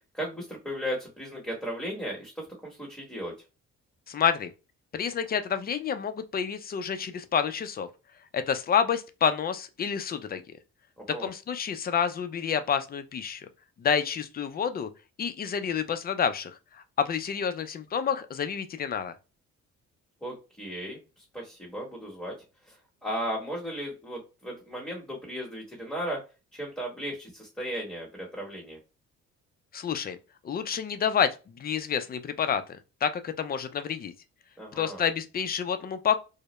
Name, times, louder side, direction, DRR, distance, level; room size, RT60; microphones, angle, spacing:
voice 1, 0.1-2.3 2.6-3.3 11.1-11.3 20.2-21.0 21.3-22.3 22.7-22.8 23.0-26.2 26.5-28.8 34.6-35.0, equal, 5° left, 1.0 m, -35 dB
voice 2, 4.1-4.5 4.9-7.9 8.3-10.4 11.2-13.5 13.8-14.9 15.2-16.5 17.0-19.1 29.7-30.2 30.4-32.6 33.0-34.1 34.7-36.2, left 7 dB, 30° left, 0.4 m, -28 dB
2.1 x 2.0 x 2.9 m
cardioid pair, 90°, 30 cm